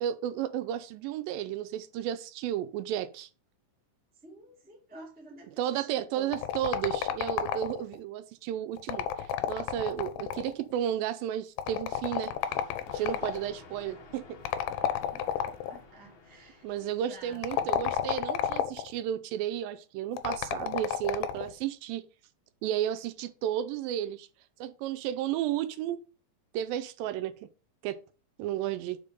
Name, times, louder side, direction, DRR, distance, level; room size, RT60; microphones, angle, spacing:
voice 1, 0.0-3.3 5.5-12.3 12.9-14.4 16.6-22.0 22.6-24.3 24.6-26.0 26.5-27.5 27.8-28.0 28.4-29.0, right 11 dB, 85° right, 2.3 m, -33 dB
voice 2, 4.2-6.4 14.8-15.2 15.6-17.7, right 2 dB, 10° right, 0.5 m, -51 dB
sound 1, 6.3-8.0 8.8-10.6 11.6-13.4 14.5-15.8 17.3-18.9 20.2-21.5, left 9 dB, 85° left, 2.3 m, -31 dB
Thunder, 12.3-17.7, left 4 dB, 70° left, 1.1 m, -52 dB
5.2 x 4.9 x 5.2 m
omnidirectional pair, 4.1 m